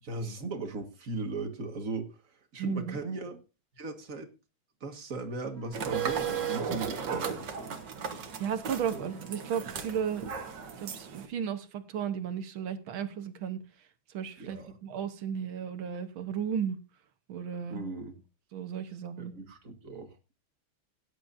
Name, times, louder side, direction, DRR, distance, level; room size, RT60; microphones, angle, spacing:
voice 1, 0.0-3.4 3.8-4.3 4.8-7.8 8.9-9.1 14.4-14.7 17.7-18.1 19.2-20.2, right 3 dB, 45° right, 1.9 m, -38 dB
voice 2, 2.6-3.0 8.2-10.2 10.8-13.6 14.1-16.8 17.3-17.8 18.5-19.3, right 8 dB, 80° right, 2.0 m, -34 dB
sound 1, 5.5-11.0, left 4 dB, 20° left, 5.1 m, -59 dB
sound 2, 5.7-11.3, right 7 dB, 65° right, 1.9 m, -35 dB
16.5 x 10.0 x 2.6 m
omnidirectional pair, 2.2 m